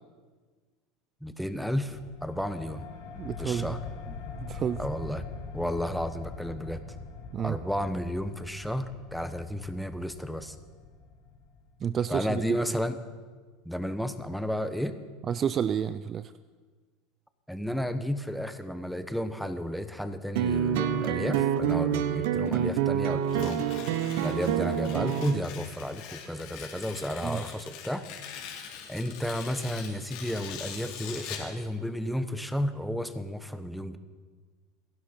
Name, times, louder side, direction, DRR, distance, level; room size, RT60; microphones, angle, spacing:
voice 1, 1.2-2.9 3.4-3.8 4.8-5.2 5.5-6.8 7.4-10.6 12.1-13.0 13.6-15.0 17.5-23.7 24.2-28.1 28.9-34.0, equal, ahead, 10 dB, 1.0 m, -32 dB
sound 1, 1.9-12.1, left 4 dB, 80° left, 2.5 m, -43 dB
voice 2, 3.2-3.8 4.4-4.8 7.3-7.6 11.8-12.6 15.3-16.3 27.2-27.4, right 8 dB, 30° right, 14 dB, 0.4 m, -30 dB
sound 2, 20.4-25.4, right 9 dB, 75° right, 0.9 m, -27 dB
Tearing, 23.2-31.5, left 8 dB, 65° left, 3.3 m, -43 dB
28.0 x 11.0 x 4.5 m, 1.4 s
supercardioid pair, 130°, 0 cm